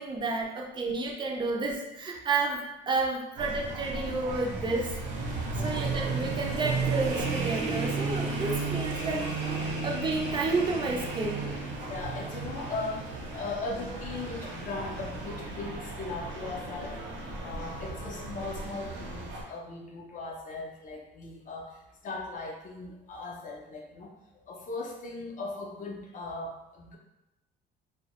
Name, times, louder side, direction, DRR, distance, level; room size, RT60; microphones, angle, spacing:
voice 1, 0.0-5.0 5.5-9.3 9.5-11.6, right 3 dB, 25° right, -1 dB, 0.3 m, -31 dB
sound 1, 3.4-19.4, right 3 dB, 65° right, 0.6 m, -34 dB
voice 2, 5.5-5.9 11.9-13.1 13.3-17.0 17.4-24.1 24.5-27.0, left 3 dB, 40° left, 0 dB, 0.4 m, -38 dB
2.1 x 2.0 x 2.8 m, 0.96 s
cardioid pair, 140°, 20 cm